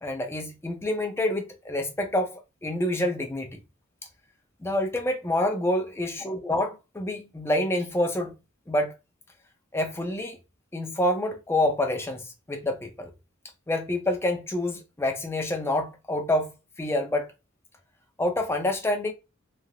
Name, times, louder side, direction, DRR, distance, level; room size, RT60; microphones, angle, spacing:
voice 1, 0.0-3.6 4.6-8.3 8.7-8.9 9.7-10.4 10.7-13.1 13.7-17.3 18.2-19.1, left 1 dB, 10° left, 0.4 m, -27 dB
3.2 x 2.4 x 2.3 m
head